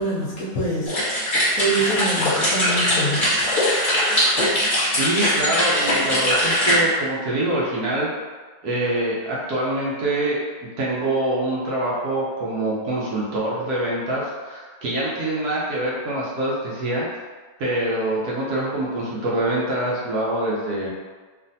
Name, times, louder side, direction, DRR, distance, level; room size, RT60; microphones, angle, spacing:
voice 1, 0.0-3.3, right 2 dB, 65° left, -7 dB, 1.1 m, -26 dB
sound 1, 0.9-6.7, equal, 30° left, 1.3 m, -21 dB
voice 2, 5.0-8.1 8.6-10.4 10.8-17.0 17.6-20.9, right 1 dB, 70° right, -6 dB, 1.1 m, -25 dB
3.2 x 2.4 x 2.6 m, 1.4 s
omnidirectional pair, 1.9 m